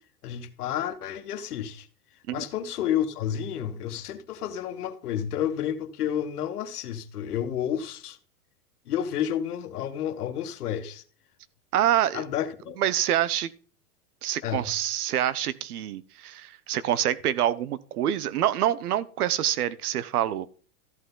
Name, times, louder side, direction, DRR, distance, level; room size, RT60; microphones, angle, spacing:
voice 1, 0.2-1.9 2.3-8.2 8.9-11.0 12.1-12.8 14.4-14.7, left 10 dB, 85° left, 1.6 m, -30 dB
voice 2, 11.7-12.2 12.8-13.5 14.2-20.5, right 11 dB, 85° right, 0.9 m, -26 dB
14.0 x 8.1 x 3.8 m
supercardioid pair, 170°, 44 cm